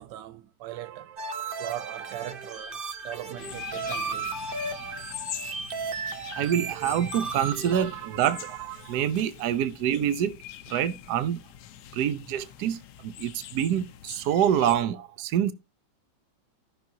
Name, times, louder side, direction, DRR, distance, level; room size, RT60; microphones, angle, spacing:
voice 1, 0.0-4.3, right 13 dB, 90° right, 1.3 m, -40 dB
sound 1, 1.2-7.8, right 4 dB, 45° right, 0.8 m, -35 dB
sound 2, 3.4-14.8, left 12 dB, 70° left, 1.2 m, -43 dB
voice 2, 6.4-10.4 10.7-11.4 11.9-15.5, right 10 dB, 70° right, 1.2 m, -26 dB
15.0 x 5.9 x 2.8 m
omnidirectional pair, 1.9 m